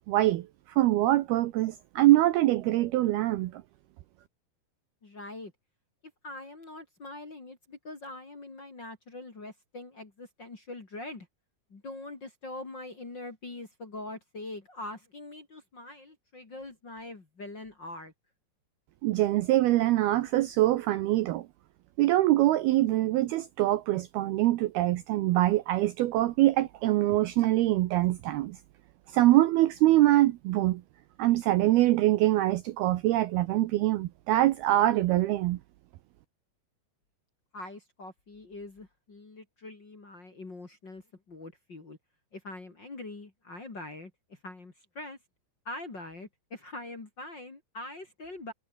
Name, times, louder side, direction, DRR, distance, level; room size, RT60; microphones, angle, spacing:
voice 1, 0.1-3.6 19.0-21.5 22.0-28.6 29.1-30.8 31.2-35.6, right 15 dB, 80° right, 2.4 m, -24 dB
voice 2, 5.0-5.5 6.2-11.3 11.7-18.1 37.5-42.0 42.3-45.2 45.6-48.5, left 2 dB, 30° left, 2.9 m, -43 dB
omnidirectional pair, 5.3 m